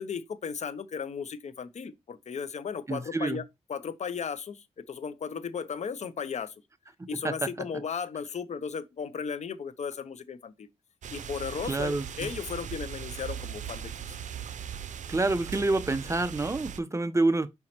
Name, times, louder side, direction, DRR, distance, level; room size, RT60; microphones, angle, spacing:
voice 1, 0.0-3.4 3.7-6.5 7.1-10.7 11.1-13.9, left 6 dB, 70° left, 0.7 m, -35 dB
voice 2, 2.9-3.4 7.0-7.5 11.6-12.1 15.1-17.5, right 2 dB, 25° right, 0.8 m, -27 dB
sound 1, 11.0-16.8, right 8 dB, 85° right, 0.6 m, -39 dB
5.4 x 4.6 x 4.3 m
cardioid pair, 65°, 12 cm